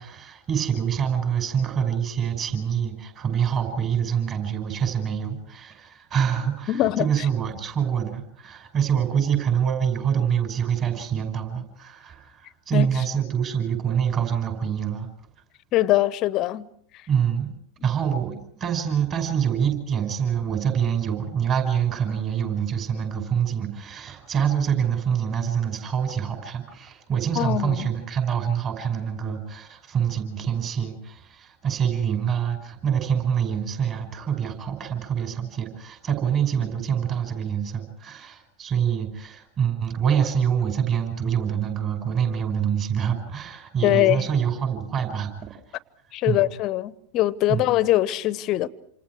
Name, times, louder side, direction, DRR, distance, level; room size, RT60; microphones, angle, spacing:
voice 1, 0.0-15.1 17.1-17.5 17.8-45.6 46.3-46.5 47.5-47.7, right 8 dB, 30° right, 5.7 m, -26 dB
voice 2, 6.7-7.1 12.7-12.9 15.7-16.7 27.4-27.9 43.8-44.3 46.1-48.7, left 15 dB, 35° left, 0.9 m, -22 dB
28.0 x 28.0 x 4.7 m
figure-of-eight pair, 90°, 0 cm